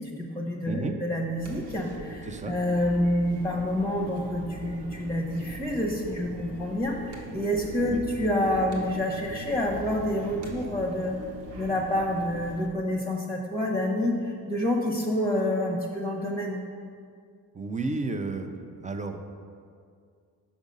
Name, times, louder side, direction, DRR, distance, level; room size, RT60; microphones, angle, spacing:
voice 1, 0.0-11.1 11.5-16.6, left 1 dB, 5° left, -1 dB, 0.8 m, -28 dB
sound 1, 1.4-12.7, right 1 dB, 80° right, 1.1 m, -41 dB
voice 2, 17.5-18.5 18.8-19.2, right 3 dB, 20° right, 6 dB, 0.5 m, -32 dB
6.2 x 5.2 x 5.3 m, 2.2 s
cardioid pair, 95°, 39 cm